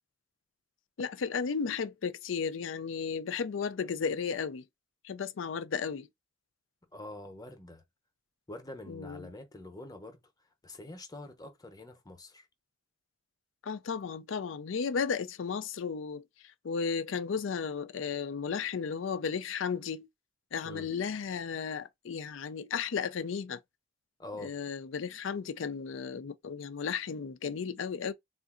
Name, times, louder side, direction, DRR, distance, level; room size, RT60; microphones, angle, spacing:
voice 1, 1.0-4.6 5.0-6.1 8.9-9.3 13.6-16.2 16.6-20.1 20.5-23.6 24.4-28.1, left 6 dB, 75° left, 0.4 m, -34 dB
voice 2, 6.9-7.8 8.5-10.2 10.6-12.5 20.6-20.9 24.2-24.6, left 1 dB, 20° left, 0.8 m, -45 dB
3.7 x 2.5 x 2.4 m
head